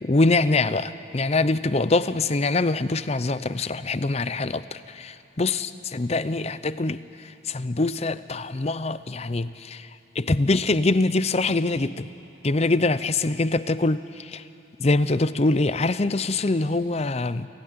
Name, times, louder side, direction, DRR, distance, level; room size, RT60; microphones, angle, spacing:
voice 1, 0.0-4.6 5.0-7.0 7.5-9.8 10.2-12.1 12.4-14.0 14.3-14.4 14.8-17.5, left 2 dB, 35° left, 14 dB, 0.6 m, -23 dB
27.5 x 16.0 x 9.6 m, 2.9 s
head